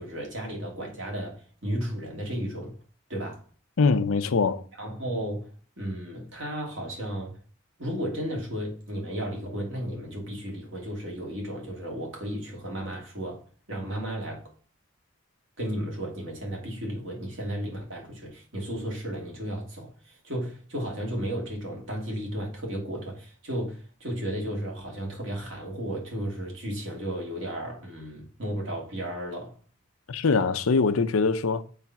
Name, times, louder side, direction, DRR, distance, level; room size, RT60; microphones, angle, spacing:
voice 1, 0.0-2.8 3.1-3.4 4.8-5.5 5.8-7.4 7.8-14.5 15.6-29.6, equal, 65° right, 2.6 m, -34 dB
voice 2, 3.8-4.6 30.1-31.6, left 4 dB, 85° left, 0.6 m, -23 dB
7.3 x 3.2 x 5.8 m
head